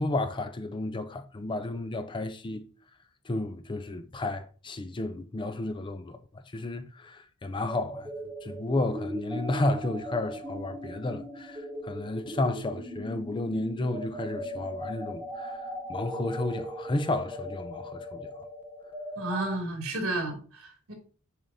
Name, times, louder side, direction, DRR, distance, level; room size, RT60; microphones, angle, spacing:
voice 1, 0.0-2.7 3.3-6.2 6.5-8.1 8.4-15.6 15.9-18.3, left 2 dB, 20° left, 0.4 m, -32 dB
sound 1, 7.7-19.6, equal, 10° right, 0.7 m, -39 dB
voice 2, 19.2-20.9, right 2 dB, 75° right, 2.8 m, -32 dB
7.2 x 4.9 x 2.7 m
head